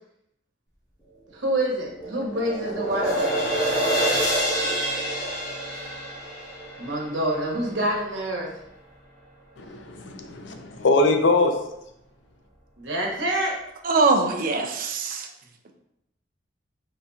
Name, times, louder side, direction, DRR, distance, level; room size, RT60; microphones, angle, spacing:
voice 1, 1.3-3.5 6.8-8.5 12.8-13.5, right 1 dB, 80° right, -1 dB, 1.0 m, -27 dB
sound 1, 1.4-7.8, right 1 dB, 20° left, 1.2 m, -27 dB
voice 2, 9.6-11.6, left 2 dB, 75° left, 5 dB, 0.5 m, -22 dB
voice 3, 13.8-15.3, right 3 dB, 45° right, 3 dB, 0.5 m, -22 dB
4.0 x 3.8 x 2.3 m, 0.81 s
head